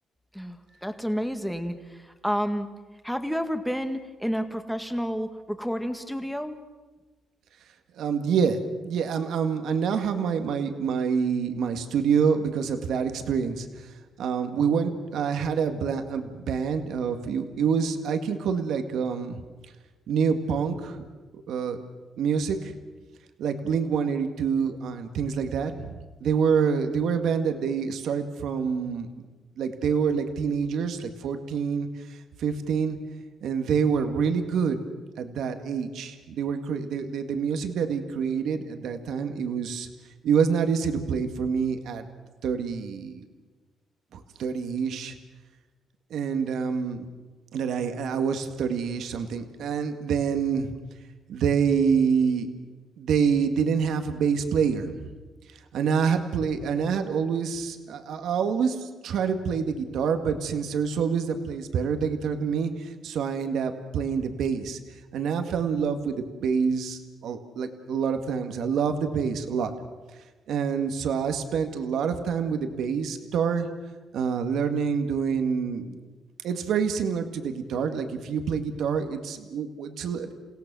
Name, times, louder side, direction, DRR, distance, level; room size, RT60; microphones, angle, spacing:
voice 1, 0.3-2.7 3.0-6.6, equal, ahead, 7 dB, 1.9 m, -30 dB
voice 2, 8.0-8.6 8.8-19.4 20.1-21.0 21.3-21.8 22.2-22.7 23.4-29.1 29.6-33.0 33.4-34.8 35.2-39.9 40.2-42.1 42.4-43.2 44.1-45.1 46.1-47.1 47.5-50.7 51.3-52.5 53.0-55.1 55.7-64.8 65.1-69.7 70.5-73.7 74.1-76.0 76.4-80.3, right 6 dB, 75° right, 6 dB, 1.9 m, -27 dB
29.0 x 17.0 x 6.2 m, 1.2 s
cardioid pair, 90°, 0 cm